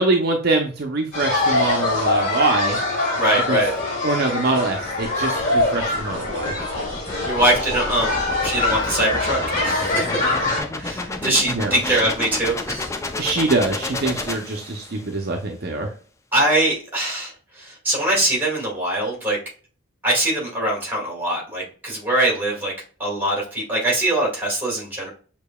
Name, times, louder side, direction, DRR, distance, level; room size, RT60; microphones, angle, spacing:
voice 1, 0.0-2.8 3.5-3.6 4.0-6.5 11.2-12.0 13.2-15.9, right 2 dB, 50° right, 2 dB, 0.6 m, -23 dB
sound 1, 1.1-10.6, left 2 dB, 40° left, 2.2 m, -23 dB
voice 2, 3.2-3.7 7.3-10.1 10.8-12.9 16.3-19.4 20.0-22.7 23.0-25.1, right 1 dB, 10° right, -2 dB, 1.9 m, -22 dB
sound 2, 4.8-15.1, left 2 dB, 15° left, 0.4 m, -31 dB
6.5 x 2.9 x 2.2 m, 0.40 s
head